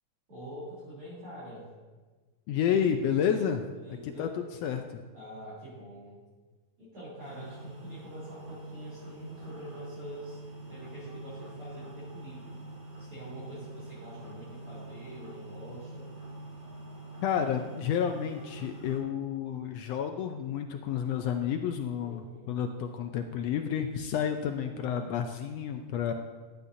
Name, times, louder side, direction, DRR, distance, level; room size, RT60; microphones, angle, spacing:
voice 1, 0.3-1.6 3.7-4.3 5.1-6.2 6.8-10.4 10.7-12.6 13.0-16.1 22.0-22.5, equal, 45° right, -10 dB, 4.1 m, -45 dB
voice 2, 2.5-3.6 4.0-4.3 4.6-5.0 17.2-26.1, left 8 dB, 80° left, 6 dB, 1.5 m, -30 dB
sound 1, 7.2-19.0, right 2 dB, 65° right, 4.5 m, -45 dB
15.0 x 11.5 x 2.7 m, 1.4 s
omnidirectional pair, 3.4 m